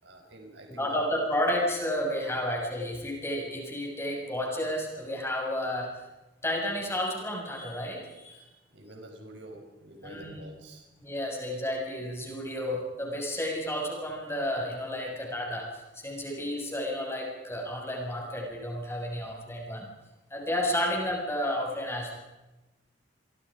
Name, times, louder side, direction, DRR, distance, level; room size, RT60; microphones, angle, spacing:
voice 1, 0.0-1.0 8.3-10.9 15.0-15.2 16.1-16.3, right 1 dB, 65° right, 3 dB, 5.2 m, -48 dB
voice 2, 0.7-5.9 6.4-8.4 10.0-10.4 11.0-19.9 20.3-22.1, left 1 dB, 15° left, -1 dB, 6.7 m, -31 dB
29.0 x 24.5 x 5.2 m, 1.1 s
head